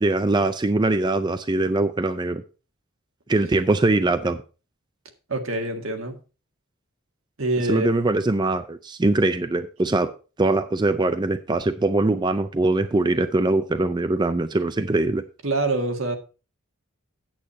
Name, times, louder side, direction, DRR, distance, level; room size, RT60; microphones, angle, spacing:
voice 1, 0.0-2.4 3.3-4.4 7.7-10.1 10.4-15.2, right 2 dB, 20° right, 0.4 m, -22 dB
voice 2, 5.3-6.2 7.4-7.9 15.4-16.2, right 2 dB, 75° right, 1.7 m, -25 dB
8.6 x 8.5 x 4.1 m
head